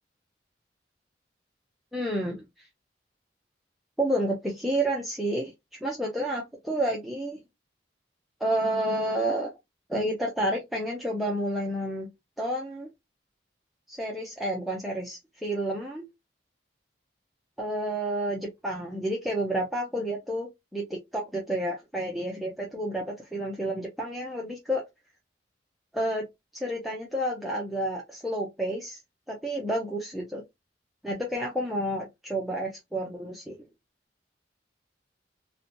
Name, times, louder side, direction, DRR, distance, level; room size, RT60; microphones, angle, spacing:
voice 1, 1.9-2.7 4.0-5.5 5.8-7.4 8.4-9.5 9.9-12.1 12.4-12.9 13.9-16.1 17.6-24.8 25.9-26.2 26.5-29.0 29.3-30.4 31.0-33.5, right 1 dB, ahead, -3 dB, 0.4 m, -30 dB
2.7 x 2.1 x 2.7 m, 0.20 s
head